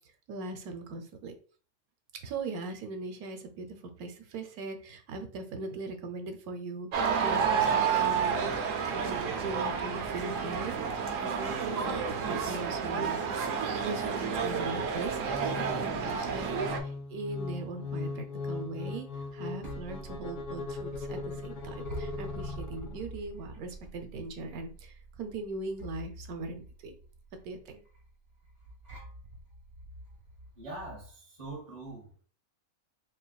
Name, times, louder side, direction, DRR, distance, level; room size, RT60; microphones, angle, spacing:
voice 1, 0.3-1.3 2.2-13.2 13.8-15.2 15.6-19.1 19.3-26.9 27.4-27.8, right 2 dB, 85° right, 1.2 m, -40 dB
sound 1, 6.9-16.8, right 6 dB, 70° right, 1.0 m, -30 dB
sound 2, 15.2-23.1, left 4 dB, 60° left, 1.0 m, -39 dB
sound 3, 19.2-31.1, right 2 dB, 50° right, 2.0 m, -46 dB
voice 2, 30.5-32.2, right 2 dB, 25° right, 1.1 m, -43 dB
4.8 x 3.0 x 2.3 m
omnidirectional pair, 1.5 m